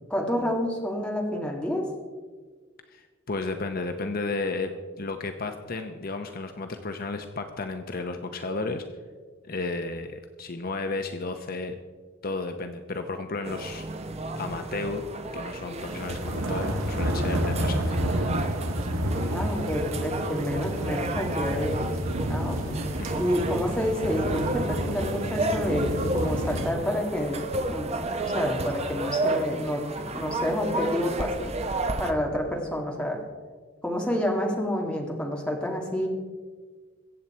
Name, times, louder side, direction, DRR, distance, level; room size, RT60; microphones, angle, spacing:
voice 1, 0.1-1.8 19.3-21.9 22.3-22.8 23.2-27.9 28.2-29.8 30.1-31.5 32.0-33.2 33.8-36.1, equal, 5° left, -1 dB, 2.1 m, -29 dB
voice 2, 2.9-4.7 5.0-8.8 9.4-11.7 12.2-13.8 14.4-18.1 23.0-23.2, left 3 dB, 45° left, 6 dB, 0.8 m, -33 dB
sound 1, 13.4-32.1, right 2 dB, 30° right, 0.9 m, -32 dB
sound 2, 15.8-26.7, equal, 85° right, 1.4 m, -30 dB
22.5 x 8.1 x 4.4 m, 1.5 s
head